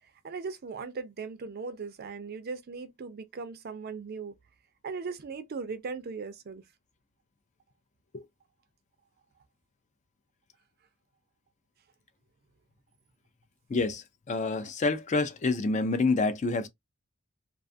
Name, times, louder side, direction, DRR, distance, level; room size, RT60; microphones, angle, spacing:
voice 1, 0.2-4.3 4.8-6.6, right 4 dB, 45° right, 0.4 m, -38 dB
voice 2, 13.7-16.7, left 3 dB, 35° left, 0.4 m, -28 dB
2.4 x 2.3 x 2.5 m
head